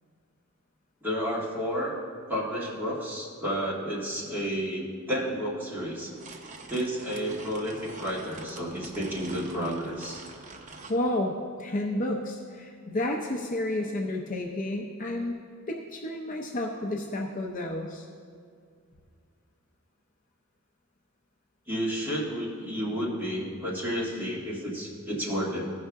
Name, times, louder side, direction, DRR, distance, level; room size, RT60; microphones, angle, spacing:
voice 1, 1.0-1.9 2.3-6.1 6.7-10.2 21.7-25.6, equal, 10° right, -6 dB, 1.8 m, -31 dB
sound 1, 5.8-11.0, right 3 dB, 35° right, 0.7 m, -46 dB
voice 2, 10.9-15.4 15.7-18.1, left 1 dB, 40° left, 1 dB, 0.6 m, -31 dB
15.0 x 5.6 x 3.5 m, 2.2 s
head